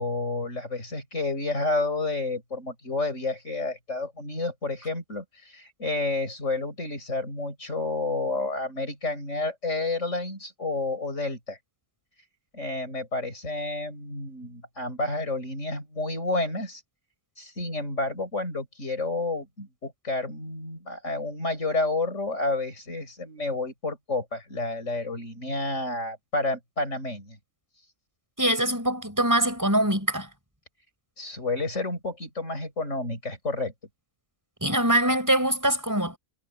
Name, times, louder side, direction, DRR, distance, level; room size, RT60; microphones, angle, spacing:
voice 1, 0.0-11.6 12.5-16.8 17.4-27.4 31.2-33.7, left 2 dB, 55° left, 7.1 m, -30 dB
voice 2, 28.4-30.3 34.6-36.2, right 1 dB, 10° right, 5.1 m, -23 dB
omnidirectional pair, 1.5 m